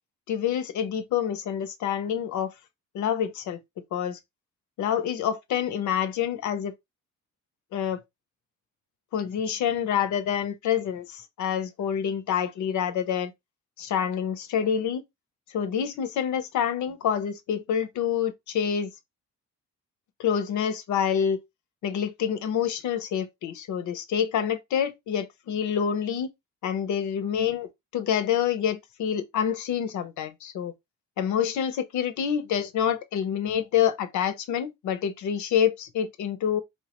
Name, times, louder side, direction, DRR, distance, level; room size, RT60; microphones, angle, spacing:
voice 1, 0.3-2.5 2.9-3.6 3.9-4.2 4.8-6.7 7.7-8.0 9.1-13.3 13.8-15.0 15.5-18.9 20.2-21.4 21.8-26.3 26.6-30.7 31.2-36.6, left 8 dB, 75° left, 0.7 m, -27 dB
4.5 x 2.2 x 2.9 m
cardioid pair, 90°, 30 cm